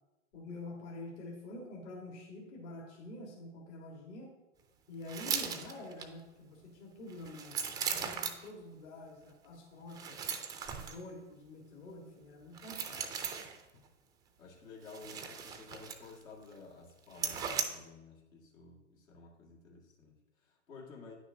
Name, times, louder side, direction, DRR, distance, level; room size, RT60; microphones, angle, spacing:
voice 1, 0.3-4.4 4.9-10.3 10.8-13.2, left 2 dB, 60° left, -1 dB, 1.8 m, -47 dB
sound 1, 5.0-6.1 7.1-8.5 9.9-11.0 12.5-13.6 14.8-16.2 16.5-16.6 17.1-17.6, right 7 dB, 10° right, 0.3 m, -38 dB
voice 2, 14.4-21.1, left 4 dB, 80° left, -3 dB, 2.1 m, -53 dB
9.4 x 6.1 x 2.8 m, 1.1 s
hypercardioid pair, 110°, 39 cm